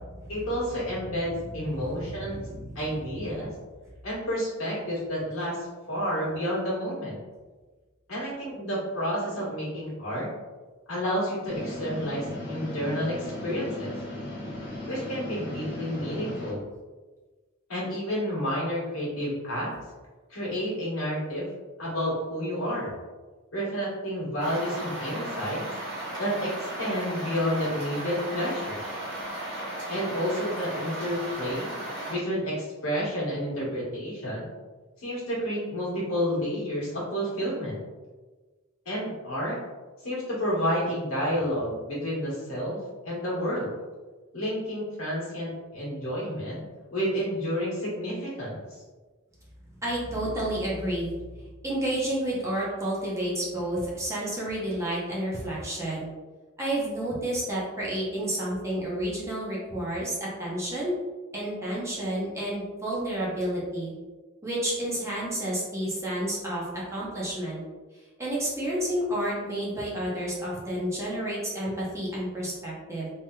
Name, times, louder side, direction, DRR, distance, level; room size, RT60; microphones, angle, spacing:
voice 1, 0.3-2.4 2.7-3.5 4.0-7.2 8.1-10.3 10.9-13.9 14.9-16.7 17.7-19.7 20.3-21.5 21.8-22.9 23.5-25.7 26.2-28.8 29.9-31.8 32.1-34.5 35.0-37.8 38.8-39.6 40.0-42.8 43.0-43.7 44.3-46.6 46.9-48.8, equal, 75° left, -6 dB, 1.3 m, -30 dB
voice 2, 1.7-2.8 49.8-51.1 51.6-56.1 56.6-61.0 61.3-63.9 64.4-67.6 68.2-73.1, right 1 dB, 15° right, -6 dB, 0.7 m, -30 dB
sound 1, 11.4-16.5, left 1 dB, 55° left, 1.1 m, -37 dB
sound 2, 24.4-32.1, right 1 dB, 55° right, 1.3 m, -35 dB
3.3 x 2.8 x 2.2 m, 1.3 s
head